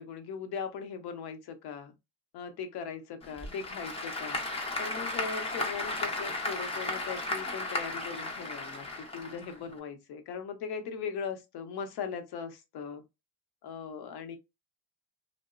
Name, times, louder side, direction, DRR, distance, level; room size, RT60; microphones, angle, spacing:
voice 1, 0.0-1.9 2.3-4.4 4.8-13.0 13.6-14.4, left 6 dB, 55° left, 0.7 m, -39 dB
Applause / Crowd, 3.2-9.8, left 2 dB, 15° left, 0.5 m, -35 dB
2.8 x 2.0 x 2.3 m
cardioid pair, 105°, 46 cm